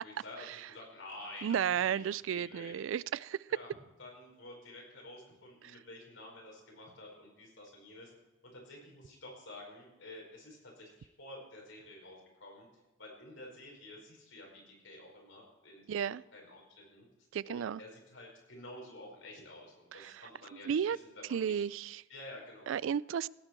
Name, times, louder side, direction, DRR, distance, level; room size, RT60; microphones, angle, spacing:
voice 1, 0.0-2.8 3.5-3.7 4.0-8.1 8.4-12.7 13.0-17.1 17.4-21.7 22.1-22.7, left 1 dB, 85° left, 0 dB, 5.0 m, -50 dB
voice 2, 1.4-3.4 15.9-16.2 17.3-17.8 20.0-20.1 20.7-21.0 21.3-22.0 22.7-23.3, right 8 dB, 80° right, 21 dB, 0.3 m, -33 dB
17.0 x 8.8 x 4.5 m, 1.1 s
head